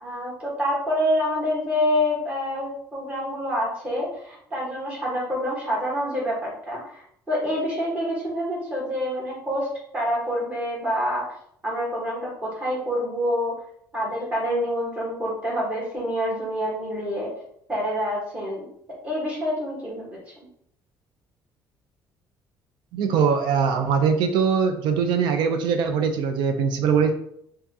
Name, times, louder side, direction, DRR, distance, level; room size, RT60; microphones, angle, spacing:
voice 1, 0.0-7.0 7.3-9.7 9.9-11.2 11.6-13.5 13.9-17.3 17.7-18.7 19.0-20.1, equal, 15° right, -5 dB, 1.4 m, -27 dB
voice 2, 22.9-27.1, right 6 dB, 75° right, 6 dB, 0.5 m, -22 dB
4.6 x 2.4 x 2.8 m, 0.69 s
cardioid pair, 175°, 8 cm